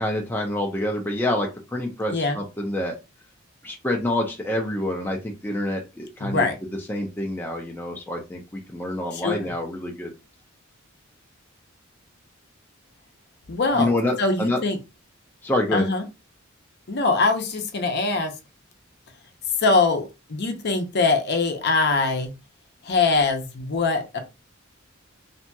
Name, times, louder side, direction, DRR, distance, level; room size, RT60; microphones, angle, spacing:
voice 1, 0.0-3.0 3.6-6.5 6.9-10.1 13.7-14.6 15.4-15.8, left 1 dB, 10° left, 0 dB, 0.5 m, -27 dB
voice 2, 6.2-6.6 9.1-9.5 13.5-13.9 14.2-14.8 15.7-16.0 16.9-18.3 19.6-22.3 22.8-24.2, left 3 dB, 55° left, 5 dB, 0.6 m, -22 dB
2.7 x 2.6 x 2.2 m, 0.26 s
head